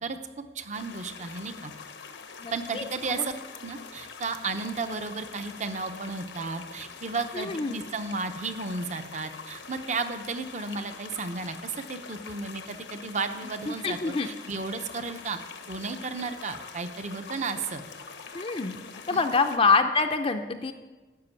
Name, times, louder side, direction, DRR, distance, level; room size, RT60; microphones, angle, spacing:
voice 1, 0.5-1.7 2.5-3.3 3.6-15.4 15.7-17.8 19.1-19.2, right 4 dB, 40° right, 9 dB, 0.8 m, -33 dB
sound 1, 0.7-19.6, left 5 dB, 80° left, 1.1 m, -44 dB
voice 2, 2.4-3.3 7.3-7.8 13.7-14.3 18.3-18.8 19.1-20.7, left 4 dB, 30° left, 6 dB, 0.5 m, -26 dB
12.5 x 6.1 x 8.3 m, 1.2 s
head